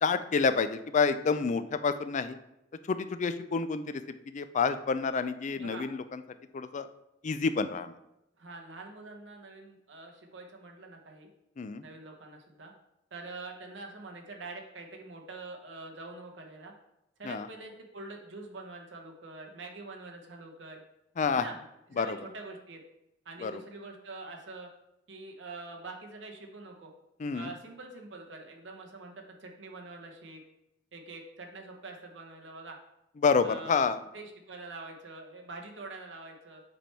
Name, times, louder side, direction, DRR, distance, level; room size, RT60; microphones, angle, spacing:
voice 1, 0.0-2.4 2.9-6.2 6.5-6.9 7.2-7.9 11.6-11.8 17.2-17.5 21.2-21.5 22.0-22.2 23.4-23.6 27.2-27.5 33.2-34.0, left 5 dB, 40° left, 11 dB, 0.4 m, -28 dB
voice 2, 5.5-5.9 8.4-11.3 11.8-12.7 13.1-16.7 17.2-20.8 21.3-21.6 21.9-22.8 23.2-24.7 25.1-26.9 27.3-30.4 30.9-32.8 33.4-33.8 34.1-36.6, right 3 dB, 70° right, 1 dB, 1.1 m, -45 dB
7.5 x 3.4 x 4.4 m, 0.86 s
head